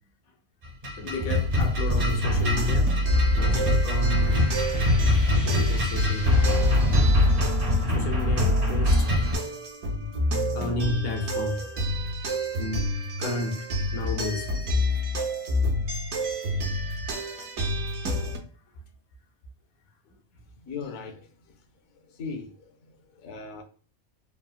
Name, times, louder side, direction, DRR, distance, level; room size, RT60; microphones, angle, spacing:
sound 1, 0.6-9.4, left 1 dB, 50° right, 0.8 m, -23 dB
voice 1, 0.9-2.9 3.3-4.6 5.4-6.5 7.9-9.1 9.5-9.6 10.5-11.6 12.6-12.9 13.2-13.7 13.9-14.5 20.1-20.2, left 2 dB, 85° left, 1.1 m, -32 dB
sound 2, 1.9-18.4, left 1 dB, 70° right, 1.1 m, -28 dB
sound 3, 3.6-8.9, equal, 35° left, 0.4 m, -45 dB
voice 2, 20.6-21.6 22.0-23.6, left 5 dB, 65° left, 0.8 m, -39 dB
3.6 x 2.0 x 2.2 m
omnidirectional pair, 1.5 m